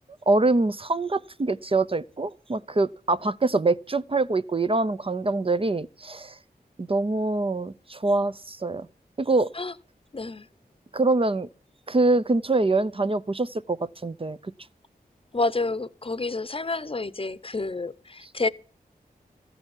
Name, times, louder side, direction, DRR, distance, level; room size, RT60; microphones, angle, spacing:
voice 1, 0.3-6.3 6.8-8.9 9.2-9.5 10.9-11.5 11.9-14.4, right 2 dB, 35° right, 0.7 m, -24 dB
voice 2, 10.1-10.5 15.3-18.5, left 3 dB, 35° left, 0.8 m, -29 dB
14.5 x 7.0 x 9.8 m
wide cardioid pair, 80°, 16 cm